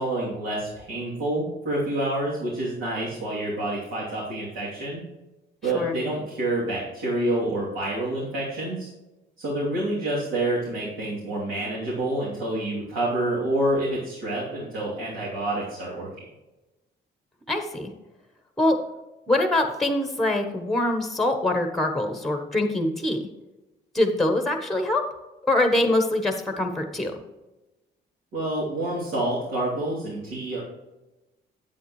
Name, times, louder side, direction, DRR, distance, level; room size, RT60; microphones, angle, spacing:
voice 1, 0.0-5.0 5.6-8.9 9.4-16.1 28.3-30.6, right 1 dB, 80° right, -8 dB, 3.1 m, -28 dB
voice 2, 17.5-17.9 18.6-18.8 19.3-23.2 23.9-25.0 25.4-27.1, left 1 dB, ahead, 6 dB, 1.1 m, -24 dB
8.9 x 7.9 x 3.2 m, 1.0 s
cardioid pair, 90°, 20 cm